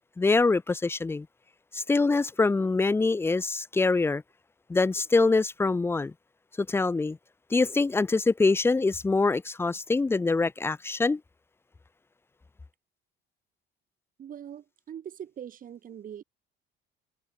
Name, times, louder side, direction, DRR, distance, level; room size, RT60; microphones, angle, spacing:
voice 1, 0.2-1.3 1.7-4.2 4.7-6.1 6.6-7.2 7.5-11.2, left 3 dB, 10° left, 0.7 m, -24 dB
voice 2, 14.2-16.2, right 9 dB, 45° right, 5.9 m, -42 dB
cardioid pair, 135°, 20 cm